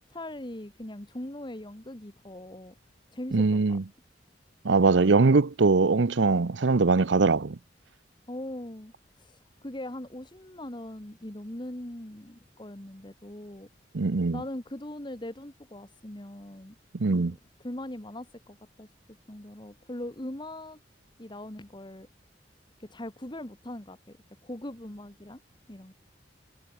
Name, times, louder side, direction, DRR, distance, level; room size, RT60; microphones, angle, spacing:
voice 1, 0.1-2.7 3.1-3.8 8.3-13.7 14.3-16.8 17.1-18.9 19.3-20.8 21.2-22.1 22.8-24.2 24.4-25.4 25.7-25.9, left 1 dB, 25° left, 1.8 m, -40 dB
voice 2, 3.3-3.8 4.6-7.6 13.9-14.4 17.0-17.3, right 3 dB, 85° right, 0.7 m, -22 dB
head